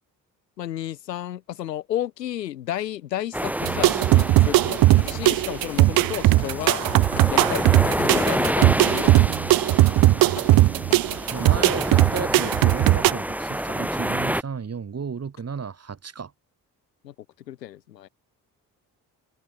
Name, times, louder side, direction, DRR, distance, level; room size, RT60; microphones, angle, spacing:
voice 1, 0.6-6.8 7.3-9.6 11.5-11.7 12.3-12.4 17.0-17.1 17.5-18.1, left 12 dB, 90° left, 1.0 m, -32 dB
sound 1, 3.3-14.4, right 1 dB, 5° right, 1.3 m, -28 dB
sound 2, 3.6-13.1, right 17 dB, 50° right, 0.5 m, -18 dB
sound 3, 4.2-4.3 4.8-7.2 7.8-9.4 10.3-11.5 12.4-12.7, left 17 dB, 70° left, 5.8 m, -40 dB
voice 2, 10.1-10.4 11.3-16.3, right 6 dB, 30° right, 1.7 m, -33 dB
figure-of-eight pair, 40°, 48 cm